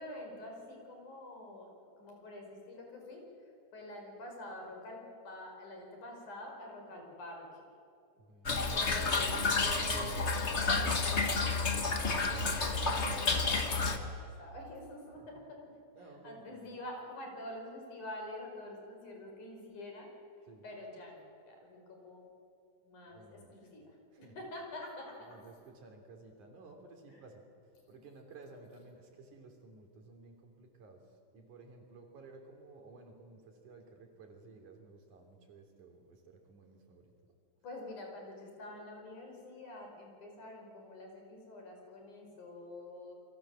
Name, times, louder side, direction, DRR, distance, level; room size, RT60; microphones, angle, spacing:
voice 1, 0.0-1.7 2.0-3.2 3.7-7.5 8.6-12.2 12.7-15.7 16.0-20.1 20.6-22.2 22.8-25.4 27.1-27.3 37.6-43.1, left 1 dB, 90° left, 1 dB, 6.5 m, -47 dB
voice 2, 8.3-8.8 15.2-15.3 15.9-16.4 20.5-20.6 23.1-23.5 24.2-24.3 25.3-27.4 27.9-31.0 31.3-37.1, right 3 dB, 85° right, 4 dB, 4.6 m, -55 dB
Toilet flush / Trickle dribble, 8.5-14.0, left 3 dB, 35° left, 1.2 m, -30 dB
28.5 x 22.5 x 7.5 m, 2.6 s
omnidirectional pair, 3.4 m